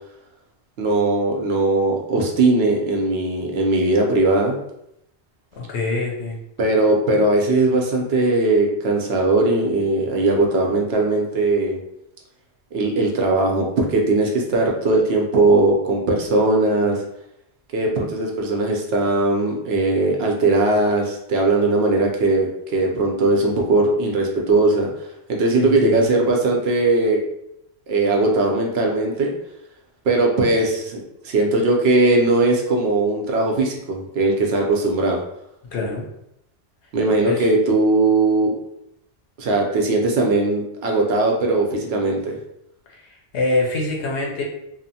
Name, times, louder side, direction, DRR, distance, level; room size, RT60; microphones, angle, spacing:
voice 1, 0.8-4.5 6.6-11.8 12.7-17.0 17.7-24.9 25.3-27.2 27.9-29.3 30.0-35.2 36.9-38.5 39.4-42.4, right 2 dB, 70° right, 0 dB, 0.8 m, -19 dB
voice 2, 5.6-6.4 25.6-26.0 35.7-36.0 37.3-37.5 42.9-44.4, left 2 dB, 85° left, -1 dB, 1.0 m, -25 dB
2.8 x 2.0 x 2.7 m, 0.80 s
omnidirectional pair, 1.1 m